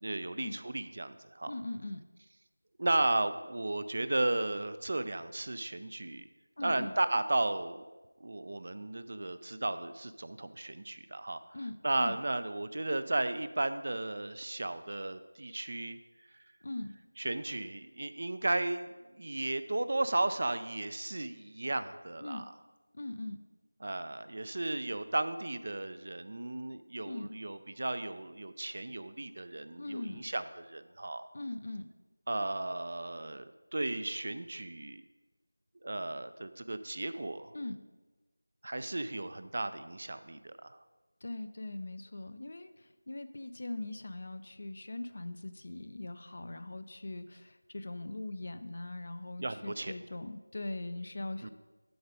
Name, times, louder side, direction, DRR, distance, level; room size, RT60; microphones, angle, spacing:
voice 1, 0.0-1.5 2.8-6.3 6.6-7.8 8.2-11.4 11.8-16.0 17.2-22.5 23.8-31.3 32.3-35.0 35.8-37.5 38.6-40.8 49.4-49.9 51.4-51.5, right 2 dB, 40° right, 12 dB, 0.4 m, -34 dB
voice 2, 1.5-2.0 6.6-6.9 11.5-12.2 16.6-16.9 22.2-22.5 22.9-23.4 27.0-27.4 29.8-30.3 31.3-31.9 37.5-37.8 41.2-51.5, left 2 dB, 40° left, 11 dB, 0.4 m, -41 dB
7.8 x 6.4 x 5.1 m, 1.2 s
figure-of-eight pair, 170°, 0 cm